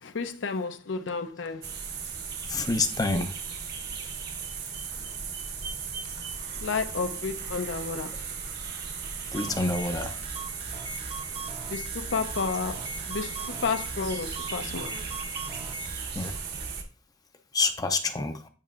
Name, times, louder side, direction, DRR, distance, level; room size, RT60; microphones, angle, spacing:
voice 1, 0.0-1.7 6.5-8.2 11.7-15.0, left 4 dB, 75° left, 0.6 m, -32 dB
sound 1, 1.6-16.8, right 6 dB, 60° right, 1.1 m, -36 dB
voice 2, 2.5-3.3 9.3-10.2 16.2-16.3 17.5-18.4, left 3 dB, 20° left, 0.5 m, -27 dB
sound 2, 9.3-16.7, right 2 dB, 30° right, 0.7 m, -41 dB
8.9 x 5.6 x 2.5 m
head